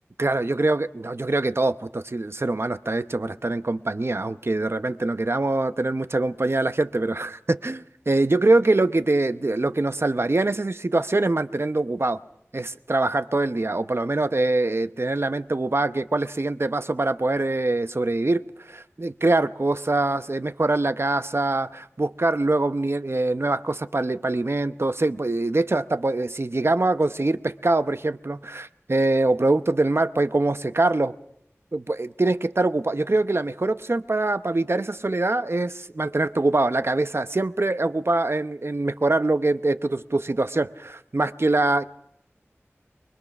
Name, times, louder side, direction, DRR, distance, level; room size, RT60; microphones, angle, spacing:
voice 1, 0.2-12.2 12.5-31.1 31.7-41.8, right 2 dB, 55° right, 0.8 m, -24 dB
24.0 x 22.5 x 6.0 m
wide cardioid pair, 40°, 5 cm